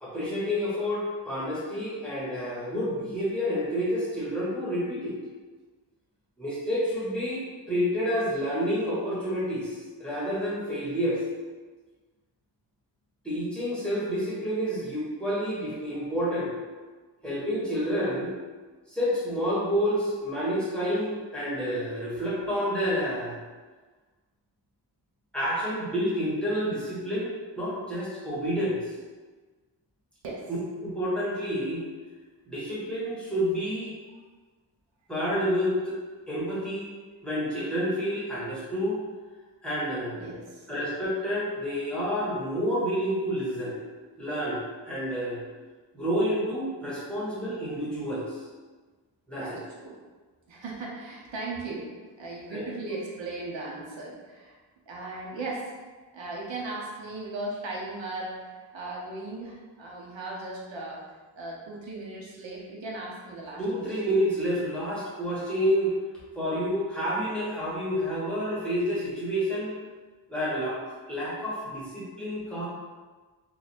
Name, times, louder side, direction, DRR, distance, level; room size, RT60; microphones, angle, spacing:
voice 1, 0.0-5.1 6.4-11.2 13.2-16.5 17.2-18.3 18.9-23.4 25.3-27.3 27.5-28.9 30.5-31.8 32.4-33.9 35.1-36.0 36.3-36.9 37.2-39.0 39.6-40.3 40.7-43.8 44.2-45.4 45.9-48.4 49.3-49.5 52.5-52.9 63.6-65.9 66.3-69.7 70.3-70.8 71.1-72.7, equal, ahead, -9 dB, 1.1 m, -29 dB
voice 2, 40.2-40.7 49.3-50.0 50.5-51.9 52.2-54.6 54.9-55.7 56.1-58.4 58.7-61.0 61.4-63.9, right 2 dB, 80° right, -3 dB, 0.9 m, -37 dB
3.2 x 2.5 x 4.2 m, 1.4 s
wide cardioid pair, 140°, 44 cm